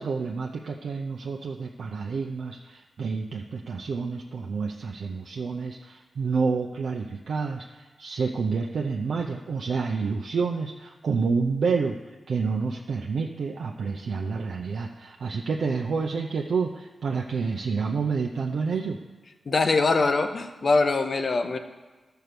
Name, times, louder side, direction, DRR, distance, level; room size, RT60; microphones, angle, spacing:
voice 1, 0.0-12.0 12.3-19.0, right 5 dB, 80° right, 1 dB, 0.6 m, -29 dB
voice 2, 19.5-21.6, left 3 dB, 55° left, 7 dB, 0.9 m, -23 dB
12.5 x 4.6 x 6.8 m, 1.3 s
cardioid pair, 65°, 0 cm